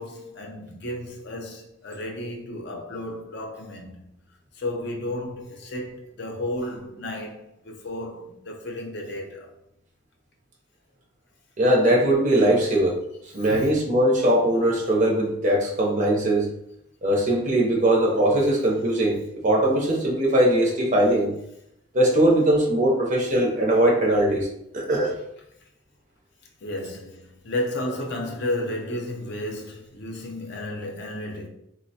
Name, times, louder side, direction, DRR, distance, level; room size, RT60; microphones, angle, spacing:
voice 1, 0.0-4.0 4.5-9.5 26.6-31.5, left 1 dB, 50° left, 0.6 m, -33 dB
voice 2, 11.6-13.0 13.3-16.5 17.0-21.3 21.9-24.5 24.7-25.1, right 1 dB, 35° right, 0.6 m, -20 dB
4.1 x 2.0 x 2.7 m
head